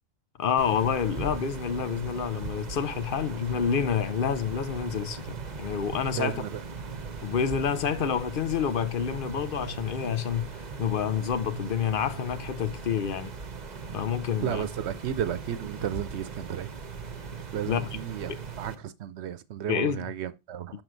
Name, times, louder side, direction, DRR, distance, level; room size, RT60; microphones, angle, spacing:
voice 1, 0.4-6.4 7.2-13.3 13.9-14.7 17.7-17.9 18.3-18.4 19.7-20.1, left 7 dB, 60° left, 0.8 m, -28 dB
sound 1, 0.6-18.7, right 5 dB, 45° right, 0.9 m, -39 dB
voice 2, 6.1-6.7 14.4-16.7 17.5-20.8, right 10 dB, 80° right, 1.0 m, -33 dB
6.3 x 6.2 x 3.8 m
omnidirectional pair, 1.1 m